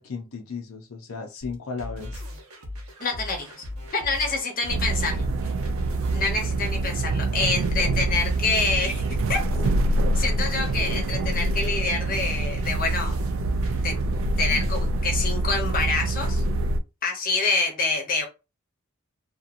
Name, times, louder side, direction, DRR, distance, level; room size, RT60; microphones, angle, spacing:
voice 1, 0.0-2.2, left 4 dB, 80° left, 0.6 m, -35 dB
sound 1, 1.4-15.8, left 1 dB, 85° right, 0.9 m, -38 dB
voice 2, 3.0-3.6 3.9-5.3 6.1-9.0 9.3-13.2 13.7-13.9 14.4-16.4 17.0-18.3, left 3 dB, 40° left, 0.8 m, -27 dB
sound 2, 4.7-16.8, right 2 dB, 65° right, 0.3 m, -25 dB
2.9 x 2.4 x 2.4 m
head